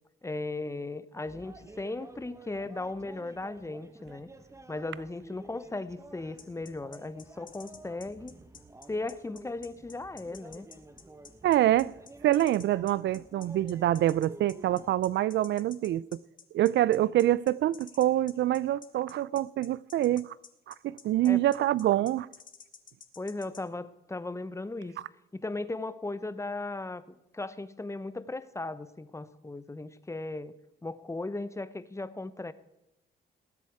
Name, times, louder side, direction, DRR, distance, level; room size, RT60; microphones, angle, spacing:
voice 1, 0.2-4.3 4.7-8.3 8.9-10.7 21.2-21.4 23.2-25.0 25.3-27.0 27.3-30.5 30.8-32.5, left 2 dB, 15° left, 0.9 m, -37 dB
sound 1, 1.3-14.9, right 2 dB, 15° right, 1.0 m, -51 dB
sound 2, 6.4-23.6, left 6 dB, 40° left, 1.7 m, -51 dB
voice 2, 11.4-11.9 12.2-16.2 16.5-20.3 20.7-22.3, right 13 dB, 65° right, 0.4 m, -26 dB
20.0 x 8.5 x 4.7 m
cardioid pair, 90°, 20 cm